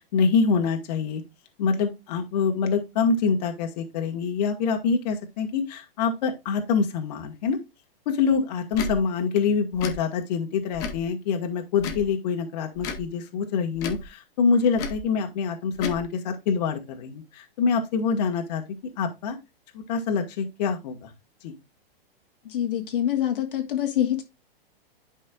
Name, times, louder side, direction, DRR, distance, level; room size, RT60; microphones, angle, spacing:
voice 1, 0.1-1.2 1.6-7.6 8.0-18.6 19.0-19.4 19.9-21.1 21.4-21.5, left 5 dB, 40° left, 1.6 m, -25 dB
Tick / Tick-tock, 8.7-8.9 9.7-10.0 10.7-11.1 11.8-12.1 12.8-13.1 13.8-14.1 14.8-15.0 15.7-16.0, left 4 dB, 10° left, 0.4 m, -33 dB
voice 2, 22.4-24.2, left 11 dB, 60° left, 1.6 m, -25 dB
11.0 x 5.4 x 2.4 m
hypercardioid pair, 160°, 31 cm